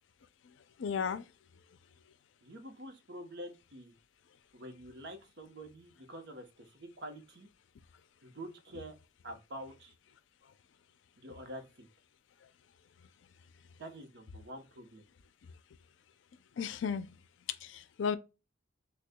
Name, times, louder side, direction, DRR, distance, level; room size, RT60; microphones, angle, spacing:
voice 1, 0.8-1.2 16.6-17.1 17.6-18.2, left 6 dB, 75° left, 0.4 m, -34 dB
voice 2, 2.4-3.9 4.5-7.5 8.2-8.9 9.2-9.9 11.2-11.9 13.8-15.0, right 1 dB, 65° right, 0.9 m, -47 dB
6.3 x 2.3 x 2.2 m
head